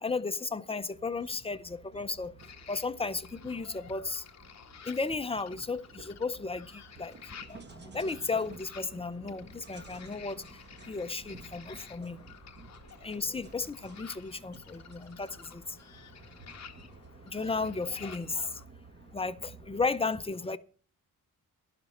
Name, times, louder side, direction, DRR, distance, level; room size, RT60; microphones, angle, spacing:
voice 1, 0.0-2.3 2.7-4.2 4.8-7.2 7.5-7.6 7.9-10.4 10.9-12.2 13.0-15.8 17.3-18.5 19.1-20.6, left 4 dB, 15° left, 0.5 m, -34 dB
sound 1, 0.9-20.0, right 3 dB, 30° right, 1.1 m, -53 dB
sound 2, 2.4-18.7, left 7 dB, 50° left, 1.0 m, -52 dB
12.0 x 11.5 x 4.3 m
wide cardioid pair, 145°, 35 cm